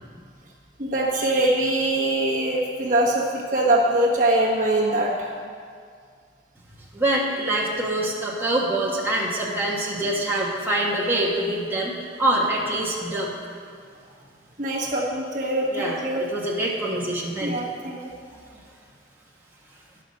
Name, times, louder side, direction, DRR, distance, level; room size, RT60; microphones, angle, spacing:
voice 1, 0.8-5.3 14.6-16.2 17.4-18.0, right 1 dB, 45° right, -3 dB, 1.2 m, -23 dB
voice 2, 6.9-13.3 15.7-16.0 16.3-17.7, right 1 dB, 10° right, -5 dB, 1.3 m, -25 dB
11.0 x 5.7 x 6.5 m, 2.2 s
head